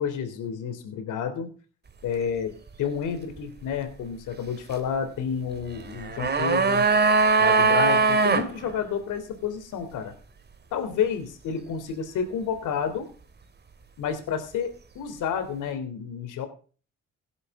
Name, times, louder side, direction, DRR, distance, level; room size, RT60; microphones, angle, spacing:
voice 1, 0.0-1.5 2.0-6.9 7.4-10.1 10.7-13.1 14.0-16.5, left 7 dB, 85° left, 9 dB, 3.3 m, -30 dB
sound 1, 5.9-8.5 8.7-8.8, right 4 dB, 35° right, 2.4 m, -20 dB
17.0 x 11.0 x 3.7 m, 0.38 s
cardioid pair, 90°, 30 cm